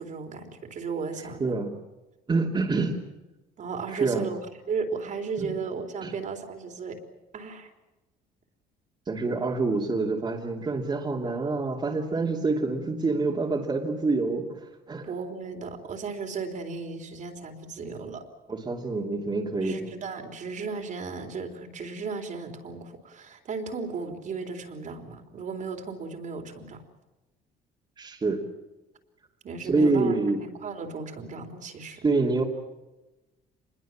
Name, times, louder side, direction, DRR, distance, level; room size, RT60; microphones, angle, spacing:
voice 1, 0.0-1.5 3.6-7.0 7.3-7.7 15.0-18.2 19.6-26.8 29.4-32.1, right 4 dB, 50° right, 5 dB, 3.8 m, -35 dB
voice 2, 1.4-1.7 2.3-3.0 3.9-4.3 5.4-5.6 6.0-6.1 9.1-15.1 18.5-19.9 28.0-28.5 29.6-30.4 32.0-32.4, right 3 dB, 25° right, -1 dB, 2.9 m, -26 dB
26.0 x 22.0 x 7.5 m, 1.0 s
cardioid pair, 110°, 17 cm